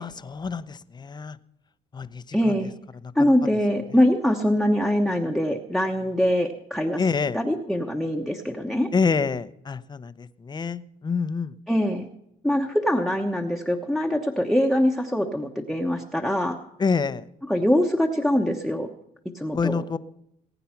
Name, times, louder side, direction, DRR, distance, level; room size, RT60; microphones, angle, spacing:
voice 1, 0.0-1.4 1.9-2.6 3.0-3.3 7.0-7.4 8.9-11.5 16.8-17.3 19.5-20.0, left 5 dB, 25° left, 13 dB, 0.8 m, -27 dB
voice 2, 2.3-2.7 3.1-7.0 7.3-8.9 11.7-12.1 12.4-16.6 17.5-18.9 19.3-19.8, equal, ahead, 2 dB, 1.1 m, -23 dB
20.0 x 9.2 x 5.8 m, 0.78 s
cardioid pair, 110°, 17 cm